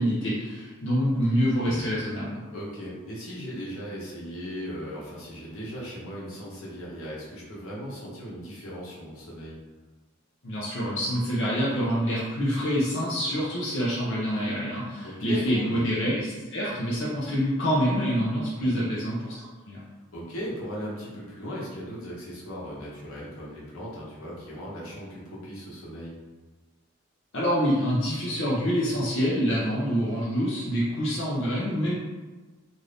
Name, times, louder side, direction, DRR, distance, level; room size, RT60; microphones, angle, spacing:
voice 1, 0.0-2.4 10.4-19.8 27.3-32.0, equal, 60° left, -7 dB, 0.6 m, -26 dB
voice 2, 2.5-9.6 15.0-15.8 18.6-18.9 20.1-26.1, equal, 85° left, -6 dB, 1.0 m, -37 dB
2.7 x 2.5 x 3.3 m, 1.2 s
head